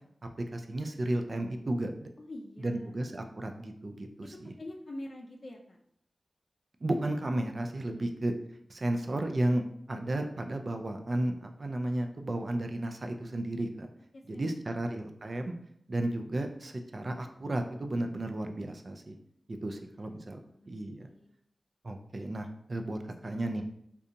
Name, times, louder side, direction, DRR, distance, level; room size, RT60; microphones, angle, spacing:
voice 1, 0.5-2.1 2.6-4.5 6.8-8.3 8.7-9.6 9.9-13.9 14.3-15.6 15.9-19.1 19.5-20.4 20.7-21.1 21.8-23.6, right 1 dB, 55° right, 5 dB, 0.3 m, -33 dB
voice 2, 2.2-2.9 4.2-5.8 8.0-8.1 14.1-14.5 19.7-20.1 20.4-20.7 21.0-21.3 23.2-23.6, left 1 dB, 60° left, 0 dB, 0.3 m, -46 dB
2.7 x 2.3 x 2.5 m, 0.71 s
cardioid pair, 40°, 0 cm